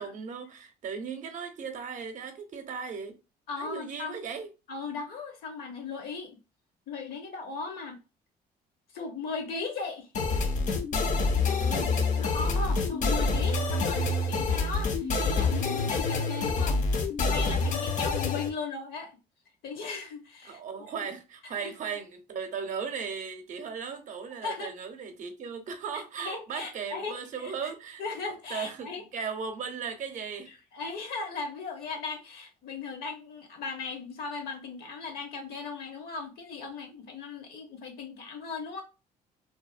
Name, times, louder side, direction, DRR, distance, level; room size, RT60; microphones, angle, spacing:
voice 1, 0.0-3.2 3.6-4.5 11.4-12.0 13.9-14.1 20.4-28.0 28.5-30.5, right 6 dB, 50° right, 0.6 m, -37 dB
voice 2, 3.5-4.2 4.7-6.4 6.9-8.0 8.9-10.1 12.2-19.2 19.6-20.6 21.0-21.1 21.6-21.7 24.4-24.7 25.9-27.2 27.4-27.5 28.0-29.0 30.7-38.8, left 4 dB, 70° left, 0.9 m, -37 dB
sound 1, 10.1-18.5, left 3 dB, 50° left, 0.5 m, -27 dB
2.7 x 2.0 x 2.4 m
cardioid pair, 110°, 17 cm